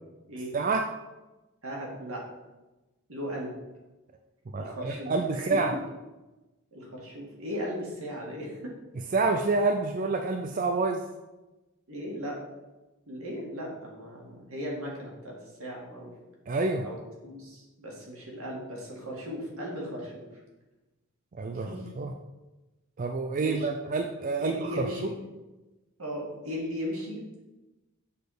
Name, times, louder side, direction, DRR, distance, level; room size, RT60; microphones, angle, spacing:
voice 1, 0.5-0.8 4.5-5.7 9.1-11.0 16.5-16.9 21.3-21.7 22.0-22.1 23.0-24.9, right 3 dB, 40° right, 4 dB, 0.3 m, -27 dB
voice 2, 1.6-2.2 3.1-3.5 4.6-5.6 6.7-8.7 11.9-12.4 13.1-15.3 15.6-16.1 16.8-20.2 21.5-21.9 23.4-23.7 24.4-25.2 26.0-27.4, equal, 80° right, -2 dB, 2.0 m, -37 dB
6.7 x 4.2 x 5.0 m, 1.1 s
head